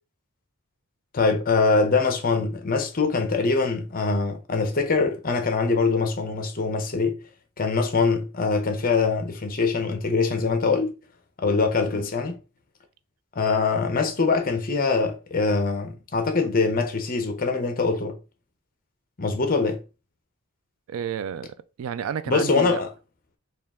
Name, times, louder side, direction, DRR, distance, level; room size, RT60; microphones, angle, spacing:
voice 1, 1.1-7.2 7.6-10.9 11.4-12.4 13.4-18.2 19.2-19.8 22.3-22.9, left 4 dB, 40° left, 0.7 m, -23 dB
voice 2, 20.9-22.8, right 7 dB, 65° right, 0.3 m, -31 dB
4.4 x 2.4 x 3.6 m
head